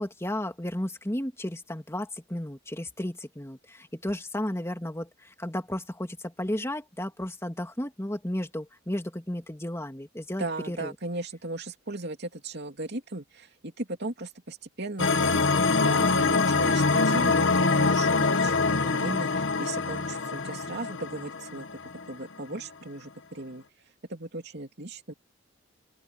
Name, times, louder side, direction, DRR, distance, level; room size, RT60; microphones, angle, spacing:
voice 1, 0.0-10.9, left 1 dB, 15° left, 2.5 m, -33 dB
voice 2, 10.4-21.7 22.1-23.6 24.1-25.1, right 2 dB, 55° right, 3.0 m, -37 dB
sound 1, 15.0-22.1, left 3 dB, 65° left, 1.4 m, -24 dB
open air
head